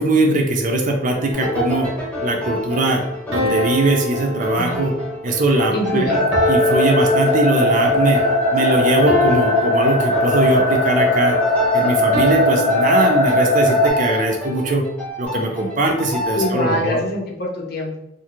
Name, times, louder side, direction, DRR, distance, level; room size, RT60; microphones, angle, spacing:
voice 1, 0.0-1.9 2.2-3.0 3.3-4.9 5.2-6.1 6.5-8.2 8.5-11.4 11.7-14.8 15.2-17.0, right 2 dB, 45° right, 2 dB, 0.4 m, -20 dB
sound 1, 1.1-2.0 3.3-5.2 6.3-7.9 9.1-10.7 12.1-13.8, left 1 dB, 80° right, 0.7 m, -25 dB
sound 2, 1.3-17.0, left 1 dB, 10° left, 0.9 m, -29 dB
voice 2, 4.6-5.0 5.7-6.2 8.6-8.8 16.3-18.0, equal, 55° left, 0 dB, 0.6 m, -24 dB
sound 3, 6.1-13.9, left 1 dB, 85° left, 0.8 m, -19 dB
2.5 x 2.4 x 2.9 m, 0.83 s
head